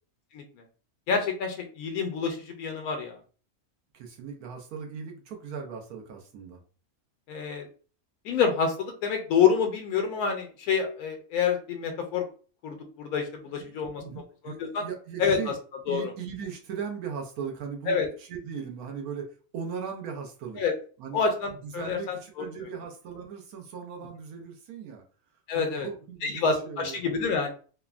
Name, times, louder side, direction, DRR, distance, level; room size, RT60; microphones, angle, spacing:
voice 1, 0.3-0.6 1.1-3.2 7.3-7.7 8.2-12.3 12.6-14.0 14.4-14.9 15.2-15.5 15.9-16.1 17.9-18.1 20.6-20.7 21.1-22.5 25.5-25.9 26.2-27.5, left 6 dB, 85° left, 4 dB, 1.1 m, -27 dB
voice 2, 3.9-6.6 13.6-13.7 14.0-15.5 15.9-19.2 19.5-20.6 21.0-21.2 21.8-25.0 25.5-27.2, right 6 dB, 80° right, 2 dB, 1.1 m, -38 dB
3.3 x 2.1 x 2.3 m, 0.39 s
omnidirectional pair, 1.6 m